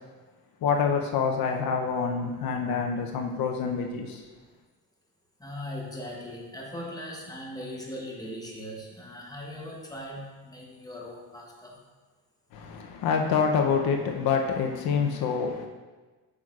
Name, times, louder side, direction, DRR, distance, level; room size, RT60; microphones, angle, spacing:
voice 1, 0.6-4.3 12.5-15.7, left 6 dB, 70° left, 3 dB, 0.7 m, -26 dB
voice 2, 5.4-11.8, left 1 dB, 10° left, -2 dB, 0.8 m, -39 dB
8.2 x 6.3 x 2.4 m, 1.3 s
cardioid pair, 155°, 37 cm